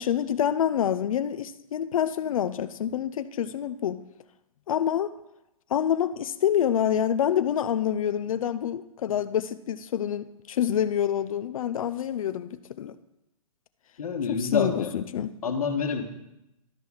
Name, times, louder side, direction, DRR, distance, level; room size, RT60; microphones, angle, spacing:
voice 1, 0.0-4.0 4.7-5.1 5.7-13.0 14.3-15.3, left 9 dB, 70° left, 12 dB, 0.5 m, -27 dB
voice 2, 14.0-14.9 15.4-16.0, left 5 dB, 85° left, 3 dB, 1.5 m, -27 dB
12.5 x 4.7 x 5.6 m, 0.89 s
hypercardioid pair, 150°, 18 cm